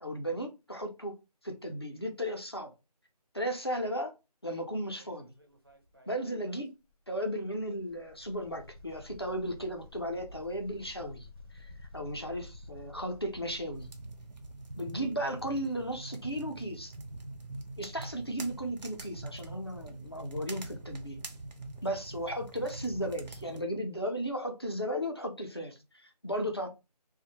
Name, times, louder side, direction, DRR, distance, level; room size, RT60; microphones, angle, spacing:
voice 1, 0.0-1.2 1.4-2.7 3.3-4.1 4.4-5.3 6.1-6.7 7.1-13.9 14.8-16.9 17.8-21.2 21.8-26.7, equal, 40° left, 0.4 m, -35 dB
sound 1, 5.0-6.6 6.9-7.0 7.4-13.9, left 2 dB, 35° right, 0.4 m, -51 dB
sound 2, 13.7-23.6, right 2 dB, 90° right, 0.6 m, -44 dB
2.5 x 2.0 x 2.8 m
figure-of-eight pair, 180°, 21 cm